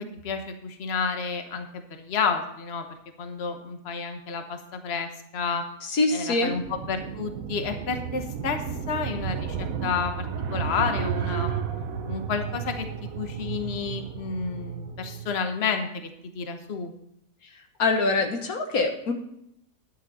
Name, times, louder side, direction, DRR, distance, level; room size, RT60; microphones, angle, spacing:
voice 1, 0.0-2.9 3.2-5.6 6.1-10.3 10.5-11.6 12.1-16.9, left 5 dB, 50° left, 6 dB, 1.3 m, -30 dB
voice 2, 5.8-6.5 17.8-19.1, left 3 dB, 85° left, 4 dB, 1.8 m, -24 dB
sound 1, 6.5-15.3, right 7 dB, 75° right, 1.3 m, -32 dB
10.5 x 10.0 x 4.1 m, 0.76 s
omnidirectional pair, 1.5 m